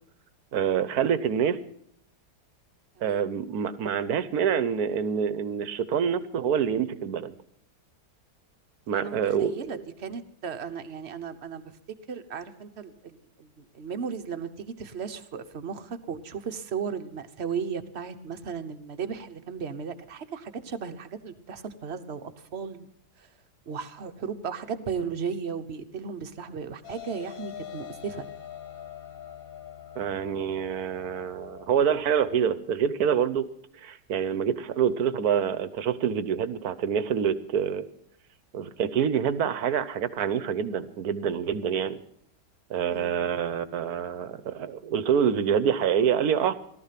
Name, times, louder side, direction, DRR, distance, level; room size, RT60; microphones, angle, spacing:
voice 1, 0.5-1.6 3.0-7.3 8.9-9.8 30.0-33.5 33.8-37.9 38.5-42.0 42.7-46.5, right 8 dB, 65° right, 14 dB, 1.3 m, -26 dB
voice 2, 8.9-11.6 12.1-22.9 23.2-23.3 23.7-28.3 42.9-43.1, right 6 dB, 45° right, 8 dB, 1.2 m, -35 dB
sound 1, 26.8-32.4, left 10 dB, 55° left, 2.1 m, -44 dB
18.0 x 13.0 x 5.8 m, 0.73 s
omnidirectional pair, 1.8 m